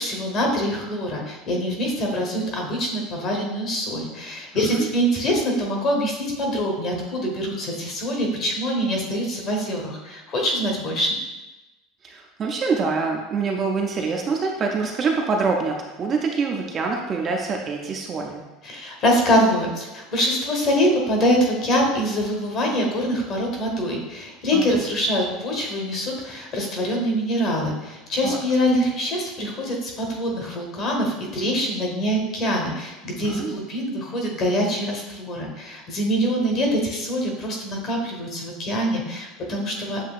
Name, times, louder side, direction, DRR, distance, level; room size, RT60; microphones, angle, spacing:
voice 1, 0.0-11.2 18.6-40.0, equal, 35° left, 0 dB, 1.0 m, -24 dB
voice 2, 4.5-4.9 12.0-18.4 24.5-24.6 28.2-28.4 33.2-33.6, right 4 dB, 25° right, 1 dB, 0.4 m, -25 dB
7.4 x 2.7 x 2.4 m, 1.1 s
cardioid pair, 160°, 0 cm